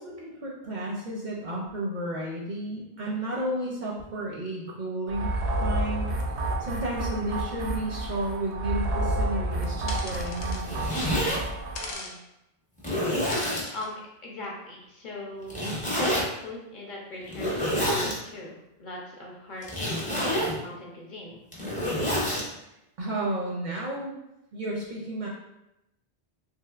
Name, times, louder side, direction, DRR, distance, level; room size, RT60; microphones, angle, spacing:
voice 1, 0.0-5.3 5.6-6.1 6.6-10.7 23.0-24.1 24.5-25.3, right 1 dB, 55° right, -3 dB, 0.5 m, -32 dB
sound 1, 5.1-11.9, right 1 dB, 90° right, 0.9 m, -30 dB
sound 2, 9.9-10.6 11.8-12.1 13.3-13.9, left 3 dB, 85° left, 0.9 m, -38 dB
Zipper (clothing), 10.5-11.4 12.1-12.2 12.8-13.7 15.5-16.2 17.3-18.2 19.6-20.6 21.3-22.4, equal, 10° left, 0.5 m, -27 dB
voice 2, 11.7-12.2 13.7-15.6 16.0-21.4, left 2 dB, 55° left, -3 dB, 0.7 m, -40 dB
3.3 x 2.7 x 2.3 m, 0.88 s
omnidirectional pair, 1.1 m